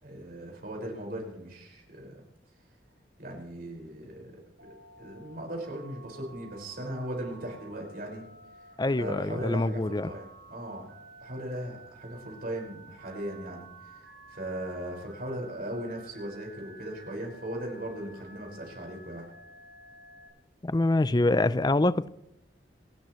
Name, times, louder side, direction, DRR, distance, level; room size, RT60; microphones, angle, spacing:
voice 1, 0.0-2.2 3.2-8.3 9.0-10.9 11.2-19.2, right 1 dB, 50° right, 5.2 m, -38 dB
Telephone, 4.6-20.3, right 2 dB, 80° right, 6.6 m, -52 dB
voice 2, 8.8-10.1 20.6-22.1, left 2 dB, 20° left, 0.5 m, -25 dB
28.0 x 13.0 x 3.1 m
head